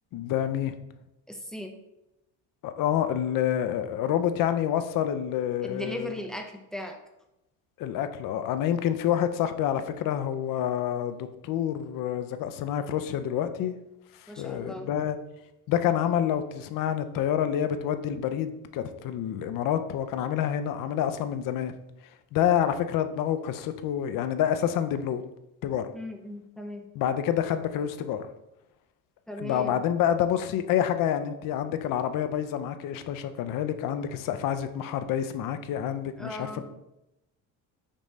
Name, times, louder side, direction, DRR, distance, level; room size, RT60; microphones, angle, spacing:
voice 1, 0.1-0.7 2.6-6.1 7.8-13.7 14.2-15.2 15.7-21.7 22.3-25.2 25.6-25.9 27.0-28.3 29.4-36.6, left 10 dB, 60° left, 10 dB, 0.5 m, -28 dB
voice 2, 1.3-1.8 5.6-7.0 14.3-14.9 25.9-26.9 29.3-29.8 36.2-36.6, left 1 dB, ahead, 3 dB, 0.4 m, -37 dB
5.2 x 2.6 x 3.1 m, 0.91 s
cardioid pair, 110°, 39 cm